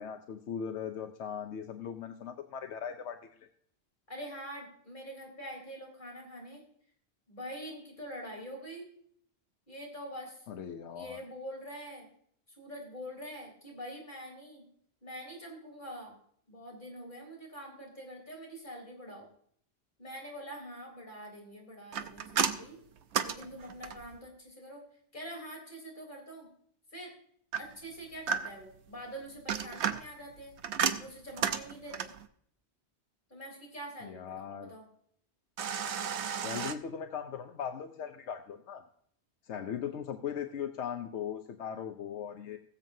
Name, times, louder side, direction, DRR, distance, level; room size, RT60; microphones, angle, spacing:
voice 1, 0.0-3.2 10.5-11.2 34.0-34.7 36.4-38.8 39.4-42.6, left 8 dB, 85° left, 7 dB, 1.0 m, -39 dB
voice 2, 4.1-6.6 7.3-8.9 9.7-10.5 11.0-12.1 12.6-14.7 15.0-16.1 16.5-19.3 20.0-22.8 23.2-24.8 25.1-26.5 26.9-27.1 27.6-30.6 31.0-32.1 33.3-34.9, equal, 45° left, -1 dB, 3.8 m, -45 dB
sound 1, 21.9-24.2 27.5-28.8 29.3-32.3 35.6-36.7, right 7 dB, 80° right, 1.1 m, -33 dB
20.0 x 7.5 x 2.7 m, 0.65 s
omnidirectional pair, 1.1 m